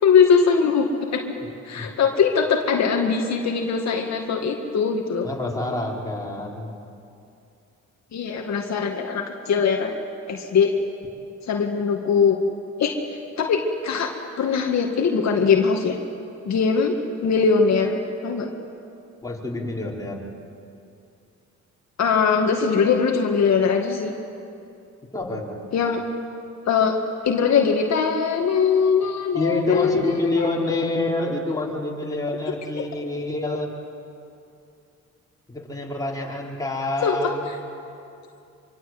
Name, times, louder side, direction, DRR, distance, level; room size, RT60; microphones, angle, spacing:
voice 1, 0.0-1.3 1.6-5.3 8.1-9.9 10.3-10.7 11.5-12.4 12.8-16.0 16.5-18.5 22.0-24.1 25.7-26.0 26.7-26.9 27.2-30.0 30.4-30.5 37.0-37.1, left 6 dB, 60° left, 1 dB, 2.2 m, -21 dB
voice 2, 5.2-6.7 19.2-20.2 25.1-25.6 29.3-33.7 35.5-37.5, left 2 dB, 10° left, -3 dB, 5.1 m, -27 dB
25.5 x 24.0 x 8.0 m, 2.6 s
cardioid pair, 90°, 30 cm